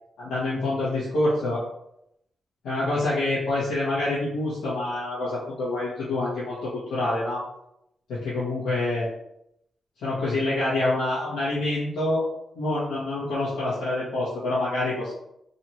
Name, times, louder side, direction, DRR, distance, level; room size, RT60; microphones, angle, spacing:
voice 1, 0.2-1.6 2.6-7.4 8.1-9.1 10.0-12.2 12.5-15.1, left 2 dB, 90° left, -11 dB, 1.8 m, -26 dB
4.1 x 2.9 x 4.5 m, 0.78 s
cardioid pair, 65°, 0 cm